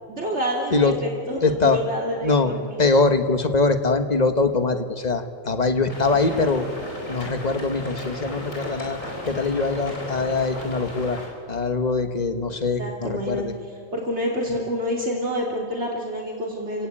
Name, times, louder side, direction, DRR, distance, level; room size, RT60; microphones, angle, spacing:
voice 1, 0.1-2.6 12.8-13.5 13.9-16.9, equal, 55° right, -2 dB, 3.1 m, -27 dB
voice 2, 1.4-1.8 2.2-2.5 2.8-6.7 7.1-9.0 9.2-11.2 11.5-13.5, left 3 dB, 30° left, 8 dB, 1.4 m, -22 dB
sound 1, 5.9-11.3, left 1 dB, 75° left, 5.1 m, -35 dB
29.5 x 18.0 x 8.9 m, 2.4 s
omnidirectional pair, 1.4 m